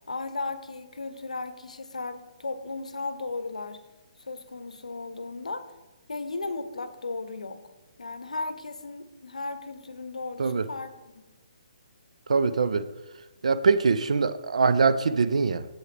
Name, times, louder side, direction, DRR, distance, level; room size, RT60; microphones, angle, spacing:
voice 1, 0.1-3.8 4.2-5.7 6.1-7.6 8.0-11.2, left 3 dB, 80° left, 12 dB, 0.7 m, -35 dB
voice 2, 12.3-12.9 13.4-15.7, right 4 dB, 65° right, 13 dB, 0.5 m, -23 dB
8.3 x 7.8 x 3.3 m, 1.1 s
figure-of-eight pair, 135°, 4 cm